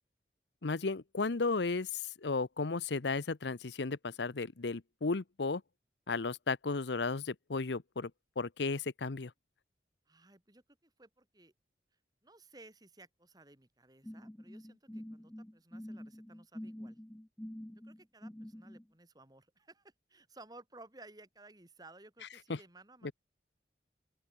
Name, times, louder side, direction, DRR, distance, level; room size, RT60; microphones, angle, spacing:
voice 1, 0.6-5.6 6.1-8.1 8.4-9.3 22.5-22.6 23.0-23.1, left 3 dB, 80° left, 0.8 m, -34 dB
voice 2, 10.1-11.5 12.2-17.0 17.8-23.1, right 2 dB, 20° right, 2.5 m, -57 dB
sound 1, 14.0-18.8, equal, 10° left, 0.5 m, -47 dB
open air
head